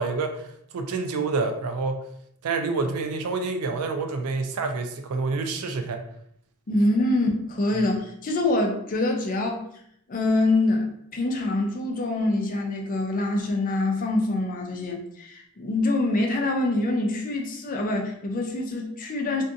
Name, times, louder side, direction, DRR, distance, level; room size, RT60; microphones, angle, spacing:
voice 1, 0.0-2.0 2.4-6.0, right 4 dB, 85° right, 6 dB, 0.4 m, -28 dB
voice 2, 6.7-9.6 10.1-19.4, left 2 dB, 40° left, 2 dB, 0.4 m, -25 dB
2.6 x 2.4 x 2.6 m, 0.70 s
head